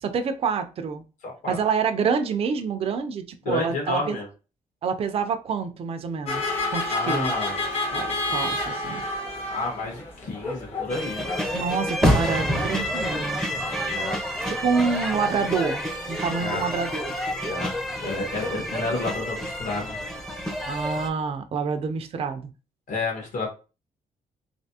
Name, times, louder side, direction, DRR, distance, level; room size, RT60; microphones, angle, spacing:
voice 1, 0.0-1.0 1.5-4.2 4.8-7.3 7.9-9.1 11.5-13.4 14.5-17.2 20.7-22.5, right 5 dB, 45° right, 0.5 m, -27 dB
voice 2, 1.2-1.5 3.4-4.3 6.9-7.6 9.5-11.3 13.8-14.2 16.4-16.6 17.5-17.7 18.0-20.0 22.9-23.5, left 3 dB, 60° left, 1.5 m, -30 dB
sound 1, 6.3-11.9, left 2 dB, 45° left, 1.3 m, -30 dB
sound 2, 10.9-21.1, equal, 5° left, 0.6 m, -28 dB
3.3 x 2.7 x 2.8 m
cardioid pair, 135°, 15 cm